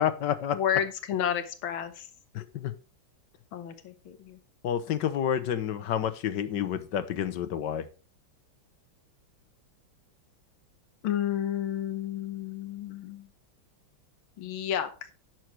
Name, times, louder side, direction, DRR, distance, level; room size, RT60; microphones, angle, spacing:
voice 1, 0.0-0.6 2.3-2.7 4.6-7.9, left 9 dB, 65° left, 13 dB, 1.4 m, -29 dB
voice 2, 0.5-2.1 3.5-4.4 11.0-13.3 14.4-14.9, left 10 dB, 90° left, 9 dB, 1.9 m, -31 dB
11.0 x 6.4 x 4.6 m, 0.35 s
omnidirectional pair, 2.2 m